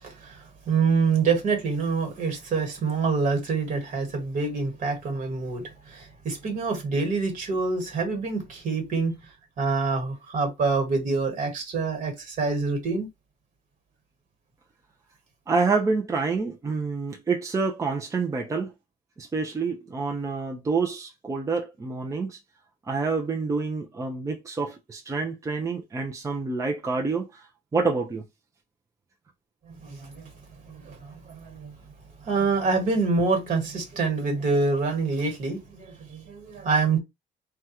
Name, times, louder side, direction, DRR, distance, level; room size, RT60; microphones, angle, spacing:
voice 1, 0.0-9.1 9.6-13.1 29.7-30.3 30.6-31.7 32.2-37.0, right 4 dB, 50° right, 1.5 m, -26 dB
voice 2, 15.5-18.7 19.2-22.4 22.8-27.5 27.7-28.2, right 4 dB, 20° right, 0.5 m, -27 dB
3.5 x 2.3 x 2.8 m
cardioid pair, 110°, 17 cm